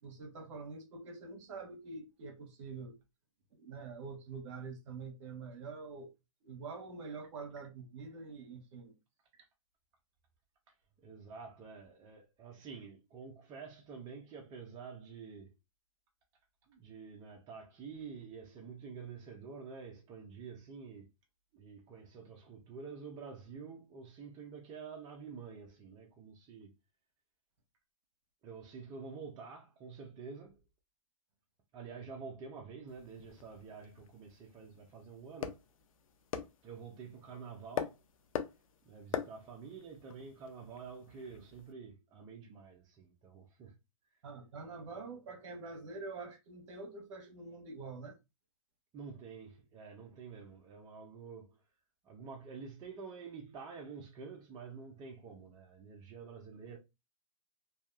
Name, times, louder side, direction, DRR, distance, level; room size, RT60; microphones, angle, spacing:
voice 1, 0.0-3.0 3.5-6.1 6.4-8.9 44.2-48.1, right 4 dB, 60° right, 1.0 m, -46 dB
voice 2, 11.0-15.5 16.7-21.1 21.5-26.7 28.4-30.6 31.7-35.6 36.6-38.0 38.9-43.7 48.9-51.6 52.0-56.8, right 5 dB, 25° right, 0.5 m, -48 dB
sound 1, 32.9-41.7, left 8 dB, 80° left, 0.5 m, -44 dB
2.7 x 2.3 x 2.3 m
hypercardioid pair, 135°, 17 cm